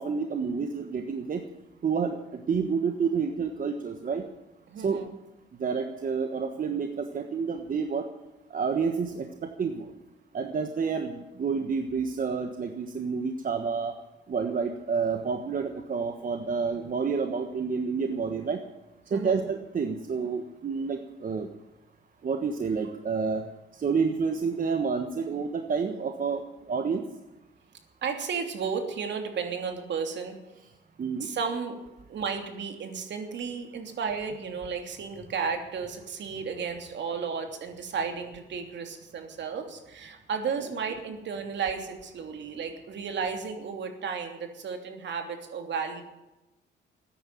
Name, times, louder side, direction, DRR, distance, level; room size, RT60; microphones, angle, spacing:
voice 1, 0.0-1.4 1.8-4.2 4.8-5.0 5.6-8.1 8.5-9.9 10.3-13.9 14.3-18.6 19.1-21.5 22.2-23.4 23.7-27.0 31.0-31.3, right 5 dB, 45° right, 5 dB, 1.4 m, -29 dB
voice 2, 4.7-5.1 19.1-19.4 28.0-30.4 31.2-31.8 32.1-46.0, right 6 dB, 65° right, 5 dB, 2.9 m, -33 dB
14.5 x 10.0 x 9.4 m, 0.99 s
cardioid pair, 90°, 20 cm